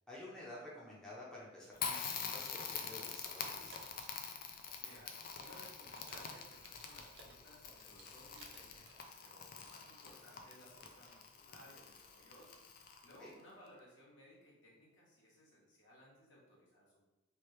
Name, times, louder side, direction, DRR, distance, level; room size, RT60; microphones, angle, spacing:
voice 1, 0.1-4.0 13.2-13.3, left 1 dB, 5° left, -7 dB, 0.7 m, -52 dB
Crackle, 1.8-13.3, left 6 dB, 50° left, 0.4 m, -46 dB
sound 1, 3.1-9.0, right 2 dB, 60° right, 0.6 m, -60 dB
voice 2, 4.8-17.0, equal, 75° left, -5 dB, 1.2 m, -61 dB
3.1 x 2.8 x 3.1 m, 1.0 s
head